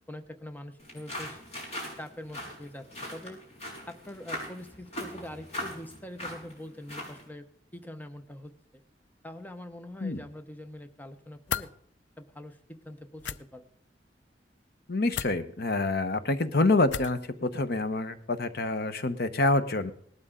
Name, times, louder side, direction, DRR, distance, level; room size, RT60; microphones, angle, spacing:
voice 1, 0.1-1.4 2.0-3.4 3.9-7.5 7.7-8.8 9.2-11.7 12.2-13.6, left 1 dB, 10° left, 8 dB, 0.8 m, -44 dB
sound 1, 0.8-7.3, equal, 40° left, 6.1 m, -40 dB
sound 2, 11.5-11.7 13.2-13.4 15.1-15.4 16.9-17.2, left 8 dB, 85° left, 0.6 m, -33 dB
voice 2, 14.9-19.9, left 2 dB, 60° left, 11 dB, 1.0 m, -27 dB
18.5 x 12.5 x 3.8 m, 0.64 s
head